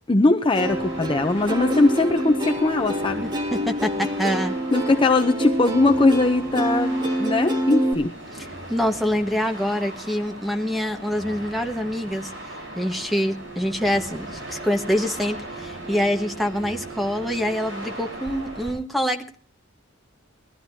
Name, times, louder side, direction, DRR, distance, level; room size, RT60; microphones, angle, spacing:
voice 1, 0.1-3.2 4.7-8.1, left 2 dB, 25° left, 6 dB, 0.7 m, -20 dB
Plucked string instrument, 0.5-7.9, equal, 20° right, 1.7 m, -26 dB
sound 1, 0.6-18.7, right 2 dB, 70° right, 7.3 m, -38 dB
voice 2, 3.2-4.5 8.7-12.3 12.7-19.4, equal, ahead, 2 dB, 1.4 m, -25 dB
20.0 x 14.0 x 2.8 m, 0.41 s
head